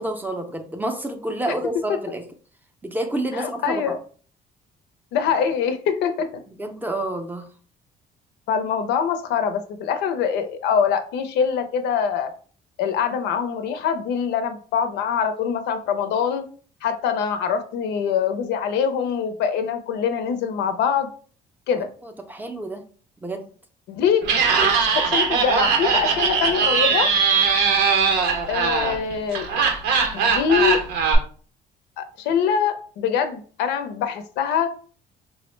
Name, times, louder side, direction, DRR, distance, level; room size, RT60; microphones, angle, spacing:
voice 1, 0.0-2.3 2.8-4.0 6.6-7.5 21.8-22.8 23.2-23.5, right 1 dB, 10° right, 0.4 m, -29 dB
voice 2, 3.3-4.0 5.1-6.3 8.5-12.3 12.8-16.5 16.8-21.1 21.7-21.9 23.9-24.3 24.6-27.1 28.5-29.5 30.1-30.8 32.0-34.7, left 7 dB, 85° left, 0.5 m, -24 dB
Laughter, 24.2-31.2, right 5 dB, 90° right, 0.7 m, -20 dB
3.6 x 2.0 x 3.1 m
cardioid pair, 110°, 17 cm